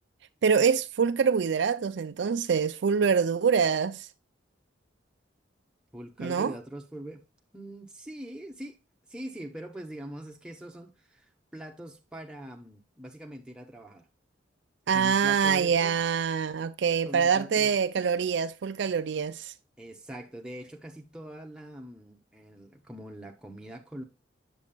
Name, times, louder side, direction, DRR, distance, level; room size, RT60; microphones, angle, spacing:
voice 1, 0.4-4.1 6.2-6.5 14.9-19.5, right 6 dB, 70° right, 0.4 m, -25 dB
voice 2, 5.9-7.2 7.5-8.8 9.1-11.3 11.5-14.1 14.9-16.0 17.0-17.7 19.8-24.0, right 1 dB, 5° right, 0.9 m, -42 dB
7.5 x 7.2 x 2.3 m
head